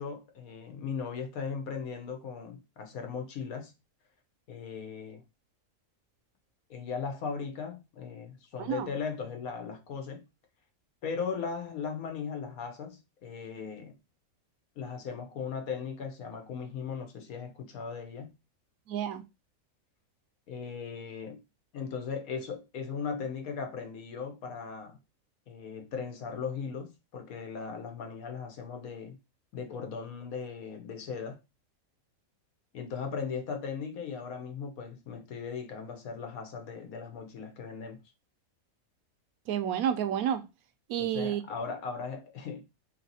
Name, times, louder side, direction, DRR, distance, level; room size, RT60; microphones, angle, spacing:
voice 1, 0.0-3.7 4.5-5.2 6.7-10.2 11.0-14.0 14.8-18.3 20.5-21.4 21.7-25.0 25.5-29.2 29.5-31.4 32.7-38.0 41.0-42.6, left 6 dB, 80° left, 1.3 m, -38 dB
voice 2, 8.6-8.9 18.9-19.2 39.5-40.4 40.9-41.4, right 9 dB, 80° right, 1.1 m, -30 dB
3.3 x 2.9 x 3.9 m
omnidirectional pair, 1.5 m